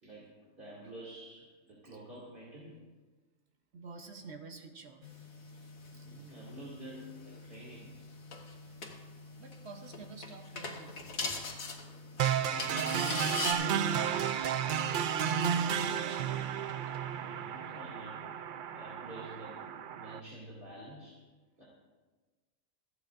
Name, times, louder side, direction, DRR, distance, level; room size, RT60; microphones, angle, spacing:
voice 1, 0.0-2.8 5.9-8.0 12.4-14.3 17.1-18.2 18.7-21.2 21.6-21.7, right 1 dB, 40° right, -6 dB, 2.6 m, -49 dB
voice 2, 3.7-6.1 8.5-8.7 9.4-11.0 14.8-16.7, right 4 dB, 55° right, 5 dB, 1.1 m, -50 dB
sound 1, 5.0-13.5, left 3 dB, 75° left, 1.9 m, -42 dB
sound 2, 12.2-20.2, right 8 dB, 85° right, 0.4 m, -32 dB
27.0 x 9.4 x 2.5 m, 1.3 s
omnidirectional pair, 1.4 m